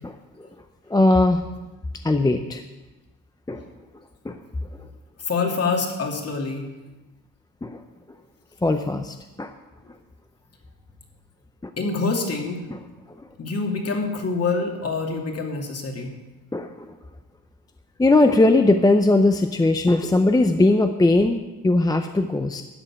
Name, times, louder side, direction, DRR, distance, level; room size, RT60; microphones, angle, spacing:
voice 1, 0.9-1.4 2.0-2.6 3.5-3.6 4.3-4.4 7.6-7.8 8.6-9.5 16.5-16.9 18.0-22.6, left 2 dB, 10° left, 7 dB, 0.6 m, -19 dB
voice 2, 5.2-6.7 11.8-12.6 13.4-16.1, left 4 dB, 40° left, 2 dB, 2.5 m, -26 dB
13.0 x 6.8 x 9.9 m, 1.1 s
cardioid pair, 140°, 36 cm